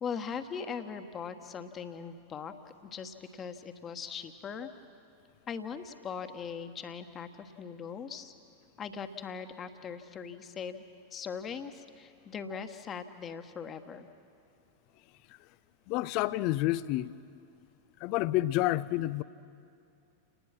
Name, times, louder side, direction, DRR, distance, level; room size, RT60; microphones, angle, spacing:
voice 1, 0.0-2.5 2.8-4.7 5.5-8.3 8.8-10.8 11.1-14.1, left 6 dB, 25° left, 1.4 m, -40 dB
voice 2, 15.9-17.1 18.0-19.2, left 16 dB, 45° left, 0.5 m, -29 dB
30.0 x 19.5 x 6.0 m
figure-of-eight pair, 90°, 0 cm